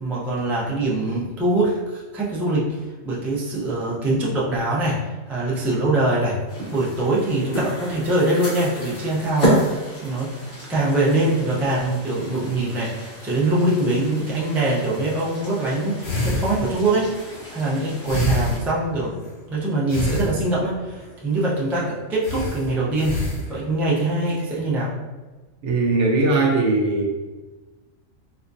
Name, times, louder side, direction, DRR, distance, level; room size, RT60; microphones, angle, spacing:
voice 1, 0.0-2.8 3.0-6.4 6.7-9.8 10.0-10.3 10.7-17.1 17.5-19.2 19.5-23.2 23.5-24.9, right 2 dB, 5° right, -6 dB, 0.3 m, -23 dB
sound 1, 6.5-18.6, right 1 dB, 50° left, 1.4 m, -31 dB
sound 2, 16.0-19.4 19.9-20.8 21.4-21.5 21.7-21.8 22.2-23.6, left 1 dB, 80° left, 1.5 m, -27 dB
voice 2, 25.6-27.1, right 3 dB, 65° right, -1 dB, 0.9 m, -19 dB
4.3 x 2.3 x 2.6 m, 1.2 s
omnidirectional pair, 1.4 m